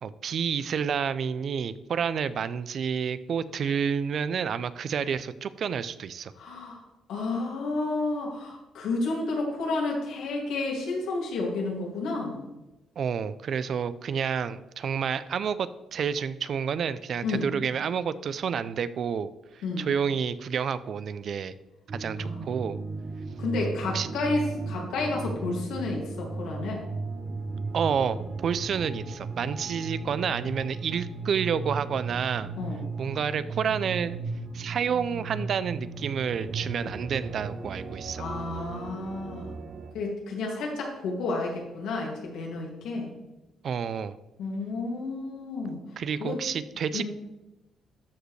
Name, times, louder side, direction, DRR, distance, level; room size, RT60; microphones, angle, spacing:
voice 1, 0.0-6.3 13.0-19.3 19.8-21.5 21.9-22.8 23.9-24.1 27.7-32.5 33.0-34.2 34.5-38.2 43.6-44.2 46.0-47.0, right 7 dB, 60° right, 15 dB, 0.4 m, -29 dB
voice 2, 6.3-6.8 7.1-12.4 17.2-17.5 19.6-19.9 22.2-22.4 23.4-26.8 32.6-32.8 38.2-39.5 39.9-43.1 44.4-45.8 46.2-46.4 46.9-47.0, left 3 dB, 85° left, -1 dB, 2.3 m, -31 dB
sound 1, 21.9-39.9, right 3 dB, 45° right, 0.8 m, -36 dB
12.5 x 5.0 x 3.2 m, 1.0 s
cardioid pair, 90°, 0 cm